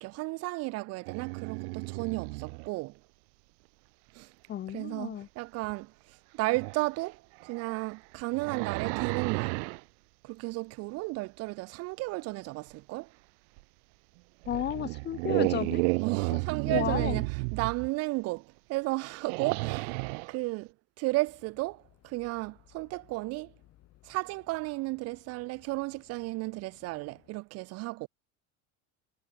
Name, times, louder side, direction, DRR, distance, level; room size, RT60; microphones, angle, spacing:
voice 1, 0.0-3.0 4.1-4.3 4.7-9.6 10.2-13.1 16.0-19.9 20.3-23.5 24.0-28.1, right 22 dB, 50° right, 0.4 m, -34 dB
sound 1, 1.1-2.7 5.6-5.7 6.5-6.8 7.4-9.8 13.6-13.7 14.4-17.9 19.1-20.3, right 35 dB, 85° right, 1.0 m, -32 dB
voice 2, 4.5-5.3 14.5-15.8 16.7-17.2, left 11 dB, 30° left, 0.9 m, -33 dB
sound 2, 21.2-27.4, left 15 dB, 45° left, 5.7 m, -62 dB
cardioid pair, 150°, 34 cm